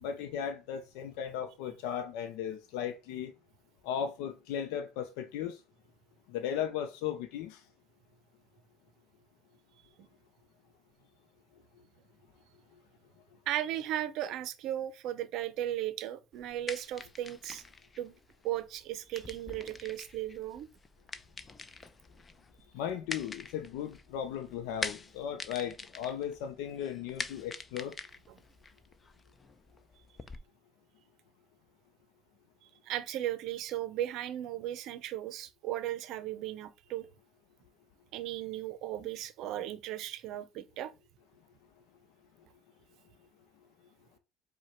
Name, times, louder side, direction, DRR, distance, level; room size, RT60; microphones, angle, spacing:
voice 1, 0.0-3.3 3.8-5.6 6.3-7.6 22.7-27.9, left 9 dB, 80° left, 0.5 m, -36 dB
voice 2, 13.5-17.6 18.0-18.1 18.4-20.7 28.3-28.4 32.6-37.1 38.1-40.9, right 12 dB, 65° right, 0.6 m, -36 dB
sound 1, 16.3-30.4, left 4 dB, 25° left, 0.5 m, -45 dB
4.8 x 2.2 x 4.3 m
supercardioid pair, 90°, 0 cm